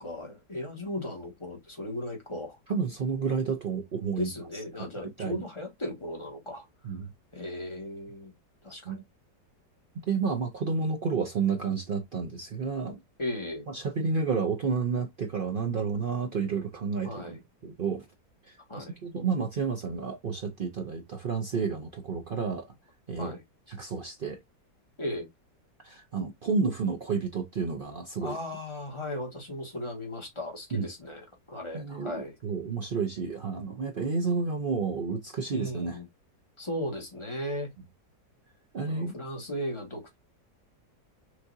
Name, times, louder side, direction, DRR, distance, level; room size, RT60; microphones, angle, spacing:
voice 1, 0.0-2.6 4.1-6.6 7.3-8.3 8.6-8.9 13.2-13.7 17.0-17.4 18.7-18.9 23.2-23.4 25.0-25.3 28.2-32.4 35.5-36.0 36.6-37.7 38.9-40.2, left 1 dB, 20° left, 1.3 m, -36 dB
voice 2, 2.7-4.3 4.8-5.4 6.8-7.1 8.7-9.0 10.1-13.0 13.7-18.1 18.4-22.7 23.1-23.3 23.7-24.4 25.8-28.4 30.7-30.9 31.7-36.0 38.7-39.1, right 5 dB, 75° right, 0.4 m, -31 dB
6.2 x 2.7 x 2.6 m
omnidirectional pair, 1.9 m